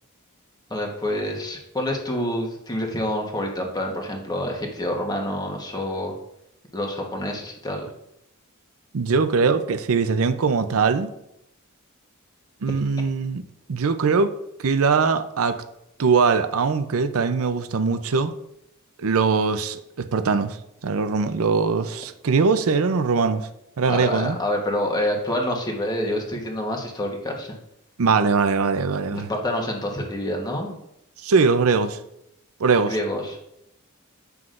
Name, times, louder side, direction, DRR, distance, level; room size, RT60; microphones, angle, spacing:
voice 1, 0.7-6.1 6.7-7.9 23.9-27.5 29.1-30.7 32.9-33.4, left 1 dB, 20° left, 1 dB, 1.2 m, -27 dB
voice 2, 8.9-11.1 12.6-13.4 13.7-14.3 14.6-15.6 16.0-18.3 19.0-20.6 20.8-23.5 23.8-24.4 28.0-29.3 31.2-32.0 32.6-33.0, right 5 dB, 70° right, 10 dB, 0.6 m, -21 dB
9.2 x 5.9 x 2.5 m, 0.81 s
head